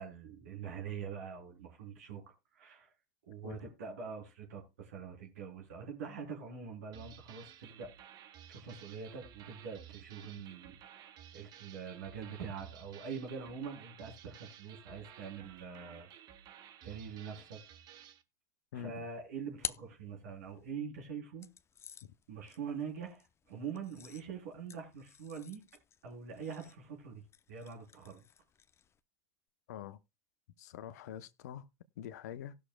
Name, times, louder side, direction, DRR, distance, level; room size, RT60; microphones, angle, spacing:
voice 1, 0.0-2.9 3.3-7.9 8.5-16.1 16.8-17.6 18.7-21.5 22.3-25.6 26.0-28.2, right 6 dB, 75° right, 3.4 m, -44 dB
sound 1, 6.9-18.2, right 10 dB, 50° right, 1.0 m, -55 dB
sound 2, 18.9-20.7 21.4-29.0, left 8 dB, 30° left, 0.6 m, -49 dB
voice 2, 29.7-30.0 30.6-31.7 32.0-32.5, left 10 dB, 75° left, 0.7 m, -45 dB
18.5 x 6.4 x 2.2 m
hypercardioid pair, 80°, 9 cm